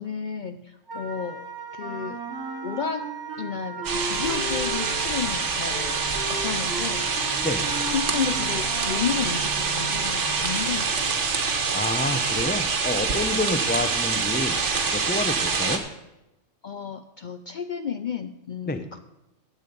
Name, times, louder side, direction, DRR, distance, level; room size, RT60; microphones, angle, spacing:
voice 1, 0.0-1.5 1.7-2.2 2.6-3.1 3.4-7.4 7.9-11.6 13.7-13.8 16.6-19.0, left 7 dB, 55° left, 10 dB, 0.6 m, -32 dB
Wind instrument woodwind instrument, 0.9-10.7, right 4 dB, 20° right, 1.2 m, -39 dB
Wind instrument woodwind instrument 2, 1.8-3.4 3.8-9.1, right 1 dB, 5° right, 3.6 m, -36 dB
sound 1, 3.8-15.8, right 5 dB, 75° right, 1.6 m, -26 dB
voice 2, 11.7-14.6 14.9-15.8 18.7-18.8, left 2 dB, 10° left, 9 dB, 0.5 m, -28 dB
14.5 x 8.8 x 5.3 m, 0.91 s
omnidirectional pair, 1.2 m